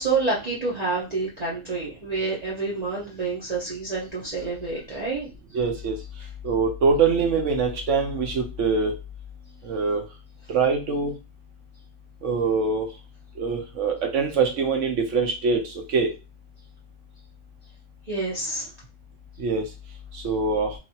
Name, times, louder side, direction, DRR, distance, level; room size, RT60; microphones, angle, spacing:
voice 1, 0.0-5.3 18.1-18.7, right 3 dB, 40° right, -5 dB, 0.7 m, -28 dB
voice 2, 5.5-6.0 6.4-8.9 9.6-10.0 10.5-11.1 12.2-12.9 13.4-15.6 15.9-16.1 19.4-19.6 20.1-20.7, right 4 dB, 70° right, 2 dB, 1.0 m, -23 dB
2.9 x 2.5 x 2.7 m, 0.28 s
omnidirectional pair, 1.4 m